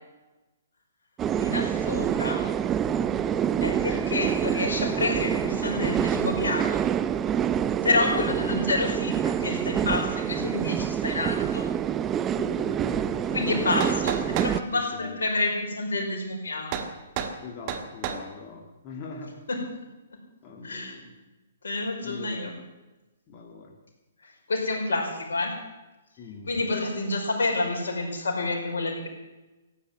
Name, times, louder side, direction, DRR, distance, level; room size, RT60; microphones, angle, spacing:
sound 1, 1.2-14.6, right 9 dB, 20° right, 0.6 m, -27 dB
voice 1, 1.4-2.4 3.6-6.8 7.8-11.7 13.3-16.8 19.5-19.6 20.6-21.0 21.6-22.5 24.2-25.5 26.5-29.1, left 2 dB, 70° left, 1 dB, 5.2 m, -28 dB
voice 2, 12.3-13.8 14.7-15.2 17.4-19.4 20.4-21.1 22.0-22.6 23.3-23.8 26.2-26.7, left 4 dB, 35° left, -1 dB, 2.4 m, -42 dB
sound 2, 13.5-14.6 16.7-16.9 17.2-17.4 17.7-18.2, right 8 dB, 35° right, 1.8 m, -31 dB
15.5 x 9.3 x 9.2 m, 1.1 s
figure-of-eight pair, 125°, 0 cm